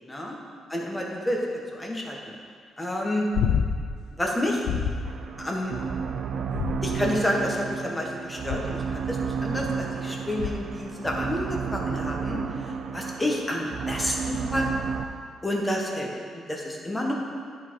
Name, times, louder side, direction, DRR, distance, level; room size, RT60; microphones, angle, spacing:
voice 1, 0.0-0.3 0.7-2.3 2.8-3.3 4.2-4.6 5.4-5.7 6.8-14.7 15.4-17.1, left 1 dB, 15° left, -1 dB, 1.3 m, -29 dB
sound 1, 3.3-4.0 4.7-5.2 6.5-7.2 8.5-8.9 10.4-10.8 13.2-13.3, left 7 dB, 85° left, 0.4 m, -28 dB
sound 2, 5.0-15.0, right 6 dB, 60° right, 0.5 m, -32 dB
10.5 x 4.3 x 4.7 m, 2.2 s
cardioid pair, 90°, 0 cm